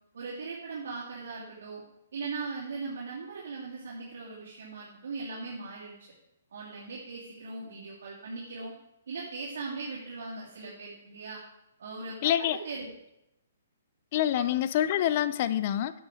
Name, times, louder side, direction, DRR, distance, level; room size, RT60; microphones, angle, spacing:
voice 1, 0.1-1.8 2.1-6.1 6.5-8.7 9.1-11.4 11.8-12.9 14.3-14.5, right 4 dB, 70° right, -8 dB, 2.9 m, -39 dB
voice 2, 12.2-12.6 14.1-15.9, left 11 dB, 40° left, 13 dB, 0.5 m, -26 dB
9.0 x 7.0 x 5.0 m, 0.87 s
hypercardioid pair, 155°, 0 cm